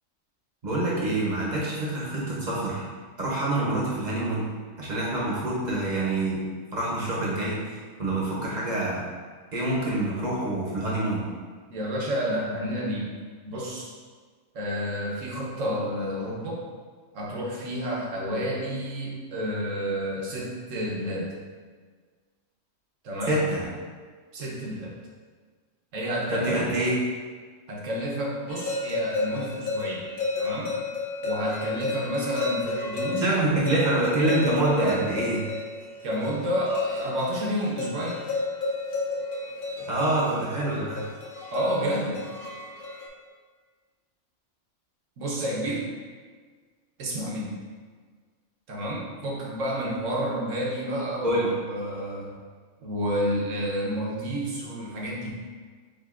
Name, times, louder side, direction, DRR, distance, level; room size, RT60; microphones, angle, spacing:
voice 1, 0.6-2.8 3.2-4.5 4.8-6.4 6.7-9.0 9.5-11.2 23.3-23.6 26.3-27.0 33.2-35.5 39.9-41.0 51.2-51.5, right 2 dB, 40° right, -6 dB, 0.9 m, -26 dB
voice 2, 11.7-13.2 13.4-13.9 14.5-16.6 17.1-21.3 23.0-23.4 24.3-25.0 25.9-26.6 27.7-30.1 30.4-30.8 31.2-33.3 36.0-38.2 41.5-42.3 45.2-45.9 47.0-47.6 48.7-52.4 52.8-55.3, equal, 75° right, -3 dB, 1.2 m, -30 dB
sound 1, 28.5-43.1, left 3 dB, 50° left, 0.7 m, -32 dB
7.5 x 2.6 x 2.5 m, 1.5 s
omnidirectional pair, 1.4 m